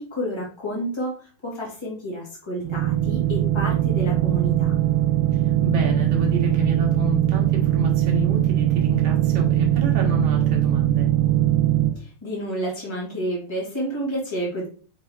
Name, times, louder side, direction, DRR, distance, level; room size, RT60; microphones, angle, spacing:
voice 1, 0.0-4.7 11.9-14.7, equal, 20° left, -4 dB, 0.7 m, -30 dB
sound 1, 2.6-11.9, right 13 dB, 80° right, 1.9 m, -21 dB
voice 2, 5.3-11.1, left 3 dB, 55° right, 0 dB, 1.8 m, -30 dB
6.5 x 4.5 x 3.5 m, 0.42 s
omnidirectional pair, 4.5 m